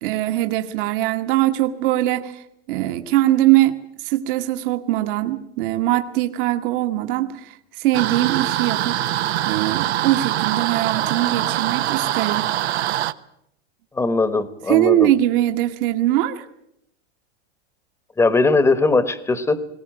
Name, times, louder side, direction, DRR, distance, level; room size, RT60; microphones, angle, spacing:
voice 1, 0.0-3.7 4.0-9.0 9.4-12.5 14.7-16.4, right 15 dB, 55° right, 7 dB, 1.5 m, -21 dB
Water Flow, 7.9-13.1, right 13 dB, 80° right, 1.0 m, -23 dB
voice 2, 13.9-15.1 18.2-19.6, left 3 dB, 10° left, 14 dB, 1.1 m, -19 dB
20.5 x 17.5 x 8.9 m, 0.77 s
supercardioid pair, 140°, 32 cm